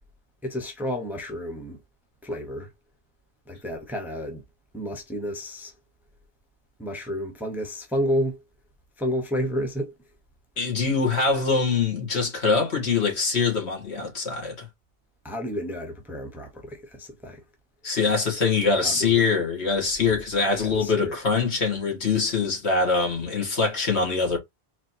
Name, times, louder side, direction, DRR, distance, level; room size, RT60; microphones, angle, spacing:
voice 1, 0.4-1.8 2.2-2.7 3.5-4.4 4.7-5.7 6.8-8.4 9.0-9.9 15.2-17.4 18.8-19.2 20.5-21.2, equal, ahead, 0.8 m, -30 dB
voice 2, 10.6-14.7 17.8-24.4, left 4 dB, 70° left, 2.0 m, -23 dB
4.1 x 3.1 x 2.7 m
omnidirectional pair, 1.2 m